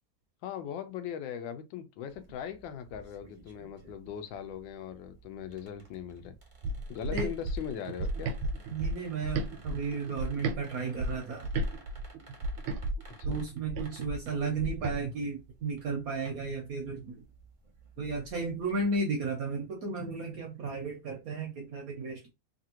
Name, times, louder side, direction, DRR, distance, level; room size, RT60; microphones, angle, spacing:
voice 1, 0.4-6.3 6.9-8.3 13.3-13.4, left 9 dB, 80° left, 1.2 m, -40 dB
sound 1, 2.1-19.0, right 3 dB, 45° right, 0.6 m, -56 dB
sound 2, 6.6-10.6 11.0-15.0, right 2 dB, 85° right, 1.4 m, -34 dB
voice 2, 8.7-11.5 13.2-17.2 18.0-22.3, right 4 dB, 70° right, 0.9 m, -34 dB
3.2 x 2.5 x 2.8 m
omnidirectional pair, 2.1 m